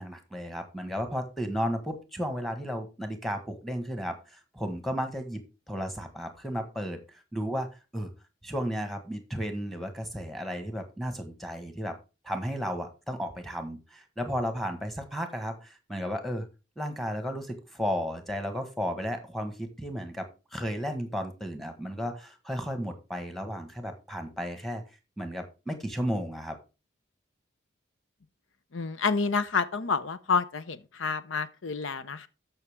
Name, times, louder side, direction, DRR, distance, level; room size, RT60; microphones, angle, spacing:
voice 1, 0.0-7.0 7.3-7.7 7.9-8.1 8.4-11.9 12.2-16.4 16.8-24.8 25.2-26.6, equal, ahead, 1.4 m, -34 dB
voice 2, 28.7-32.3, left 5 dB, 80° left, 0.7 m, -29 dB
13.5 x 5.7 x 3.6 m
head